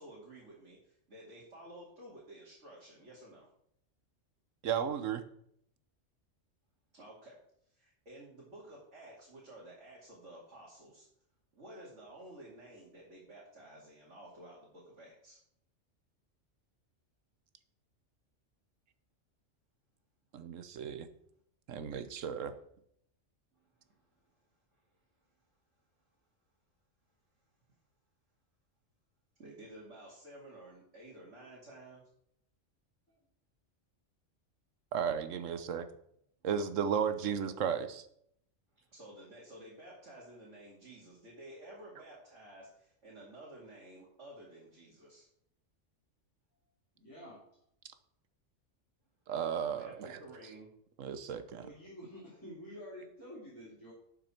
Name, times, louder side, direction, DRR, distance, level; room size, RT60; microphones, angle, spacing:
voice 1, 0.0-3.5 6.9-7.4 7.7-11.1 11.5-15.4 23.5-24.1 24.7-24.8 29.4-32.0 38.9-45.3 49.7-50.7, right 1 dB, 70° right, -6 dB, 2.8 m, -52 dB
voice 2, 4.6-5.2 20.3-21.1 21.7-22.5 34.9-35.9 36.4-38.0 49.3-50.2 51.0-51.6, right 7 dB, 85° right, 11 dB, 1.2 m, -34 dB
voice 3, 46.9-47.4 51.6-53.9, equal, 15° left, -8 dB, 3.1 m, -49 dB
12.0 x 6.7 x 4.4 m, 0.71 s
omnidirectional pair, 1.3 m